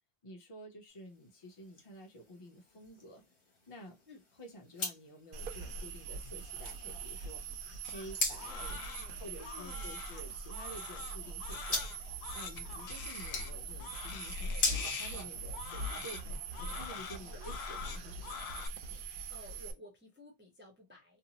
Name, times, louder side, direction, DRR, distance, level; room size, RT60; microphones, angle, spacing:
voice 1, 0.2-3.2 3.7-4.0 4.4-7.4 7.9-8.8 9.2-11.8 12.3-16.3 16.6-18.4, equal, 35° left, 0.8 m, -50 dB
sound 1, 0.9-16.0, left 2 dB, 60° left, 1.1 m, -43 dB
sound 2, 5.3-19.7, right 3 dB, 65° right, 0.7 m, -42 dB
Crying sobbing, 7.8-18.7, left 7 dB, 85° left, 0.8 m, -45 dB
voice 2, 8.4-10.0 17.2-17.4 19.0-21.2, left 1 dB, 15° right, 0.5 m, -55 dB
2.6 x 2.0 x 2.8 m
omnidirectional pair, 1.1 m